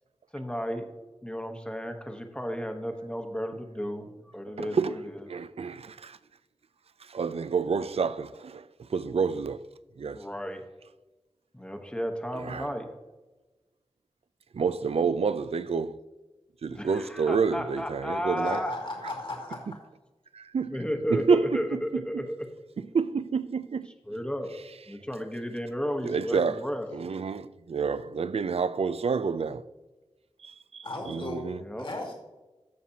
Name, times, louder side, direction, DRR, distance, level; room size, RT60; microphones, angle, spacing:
voice 1, 0.3-0.9 1.2-4.8 5.0-5.2 10.1-10.6 11.5-12.9 16.7-18.7 20.7-22.3 24.1-24.5 24.9-26.9 31.6-31.9, equal, 10° left, 1.0 m, -33 dB
voice 2, 4.6-5.0 5.3-6.2 7.0-9.6 10.0-10.2 12.3-12.7 14.5-16.0 16.6-18.6 20.3-20.8 21.1-22.2 22.8-23.9 26.0-26.6 26.9-29.6 30.4-31.6, right 5 dB, 70° right, 0.4 m, -29 dB
voice 3, 18.4-19.6 30.8-31.5 31.8-32.1, left 2 dB, 50° left, 2.2 m, -35 dB
14.5 x 5.8 x 2.8 m
wide cardioid pair, 90°, 11 cm